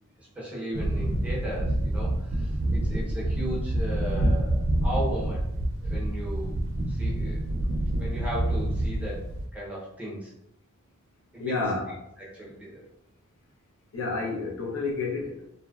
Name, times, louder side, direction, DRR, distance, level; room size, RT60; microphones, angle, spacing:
voice 1, 0.2-5.4 5.8-6.6 6.9-7.4 8.0-9.2 9.5-10.3 11.3-11.6 12.2-12.9, equal, 5° right, -6 dB, 0.6 m, -36 dB
sound 1, 0.7-9.4, right 1 dB, 70° right, 0.4 m, -27 dB
voice 2, 11.4-12.0 13.9-15.5, left 3 dB, 85° left, -1 dB, 0.6 m, -30 dB
2.6 x 2.0 x 2.3 m, 0.78 s
head